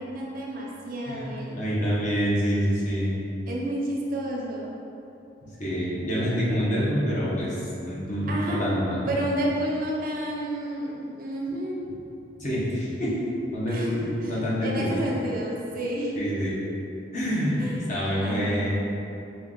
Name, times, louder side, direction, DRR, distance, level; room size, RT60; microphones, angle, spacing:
voice 1, 0.0-1.6 3.5-4.8 6.2-6.3 8.3-8.7 9.1-12.0 13.7-14.3 14.6-16.3 17.6-17.8 18.2-18.7, right 1 dB, 50° right, -3 dB, 0.6 m, -30 dB
voice 2, 1.6-3.1 5.6-8.3 8.6-9.0 12.4-13.2 13.5-14.0 14.3-15.2 16.2-16.5 17.1-17.6 17.9-18.7, equal, 45° left, -7 dB, 1.0 m, -26 dB
4.3 x 2.4 x 3.8 m, 2.9 s
head